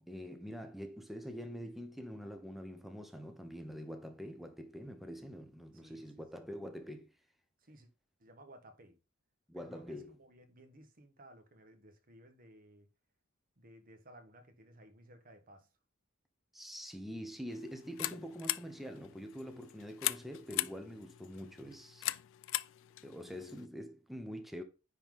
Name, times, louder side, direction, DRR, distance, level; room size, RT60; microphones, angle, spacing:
voice 1, 0.0-7.1 9.5-10.1 16.5-22.1 23.0-24.6, equal, ahead, 0.9 m, -45 dB
voice 2, 5.7-6.3 7.6-7.9 8.2-9.0 9.5-12.9 13.6-15.7, right 1 dB, 45° right, 1.4 m, -58 dB
sound 1, 17.5-23.7, left 17 dB, 65° left, 0.3 m, -40 dB
9.8 x 4.0 x 3.6 m
head